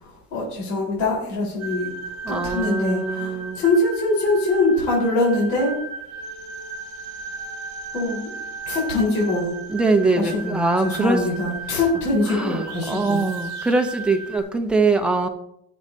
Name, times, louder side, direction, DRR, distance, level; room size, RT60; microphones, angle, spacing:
voice 1, 0.0-1.9 2.3-5.7 7.9-8.3 8.7-9.5 10.2-13.2, left 2 dB, 55° left, -4 dB, 4.2 m, -23 dB
sound 1, 1.6-14.4, right 3 dB, 50° right, 1.5 m, -35 dB
voice 2, 2.2-3.6 9.7-11.2 12.3-15.3, right 3 dB, 5° right, 3 dB, 0.6 m, -22 dB
17.5 x 7.3 x 2.7 m, 0.77 s
cardioid pair, 165°, 33 cm